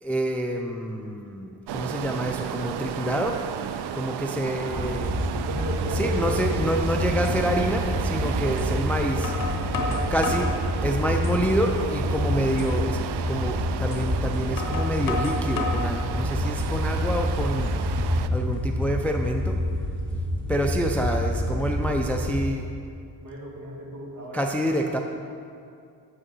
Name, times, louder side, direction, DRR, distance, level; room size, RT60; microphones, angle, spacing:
voice 1, 0.0-3.4 3.9-5.1 5.9-9.3 10.1-10.5 10.8-13.0 13.3-17.7 18.3-19.6 20.5-22.6 24.3-25.0, equal, 5° left, 3 dB, 0.3 m, -27 dB
sound 1, 1.7-18.3, right 9 dB, 80° right, 0.5 m, -33 dB
voice 2, 4.4-5.0 5.4-6.4 9.7-10.6 23.2-25.0, equal, 50° right, -3 dB, 2.1 m, -36 dB
sound 2, 4.7-22.5, left 1 dB, 20° right, 2.3 m, -28 dB
sound 3, 7.2-7.4 8.6-8.7 9.2-10.6 11.1-11.6 12.0-12.1 12.6-12.7 13.9-14.0 14.6-15.9 16.4-16.9, left 4 dB, 55° left, 1.1 m, -32 dB
7.6 x 6.3 x 6.1 m, 2.4 s
cardioid pair, 130°, 40 cm